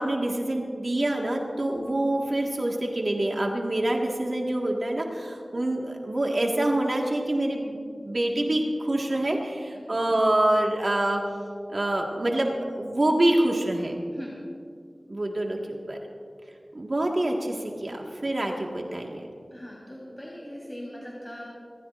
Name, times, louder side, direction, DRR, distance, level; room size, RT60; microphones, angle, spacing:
voice 1, 0.0-11.2 11.7-14.0 15.1-16.0 16.7-19.2, right 1 dB, 55° right, 0 dB, 1.7 m, -26 dB
voice 2, 19.5-21.5, equal, 10° left, -5 dB, 3.9 m, -40 dB
27.5 x 15.0 x 2.6 m, 2.3 s
wide cardioid pair, 50°, 0 cm